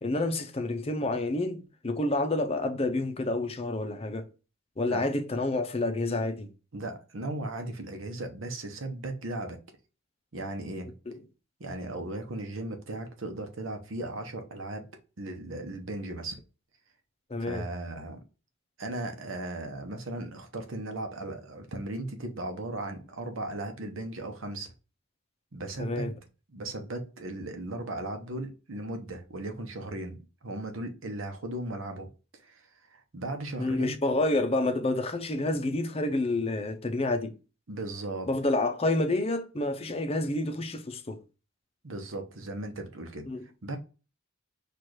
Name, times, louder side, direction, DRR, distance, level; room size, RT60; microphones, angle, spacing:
voice 1, 0.0-4.2 4.8-6.5 11.1-11.2 17.3-17.7 25.8-26.1 33.6-37.3 38.3-41.2 43.3-43.4, left 2 dB, 30° left, 0.6 m, -29 dB
voice 2, 6.7-9.6 10.3-10.9 11.6-14.8 15.2-16.4 17.4-18.2 18.8-24.7 25.5-26.1 26.5-30.2 30.4-32.1 32.4-34.0 37.7-38.3 41.8-43.3 43.6-43.8, right 2 dB, 70° right, 0.9 m, -37 dB
4.5 x 2.5 x 4.6 m
head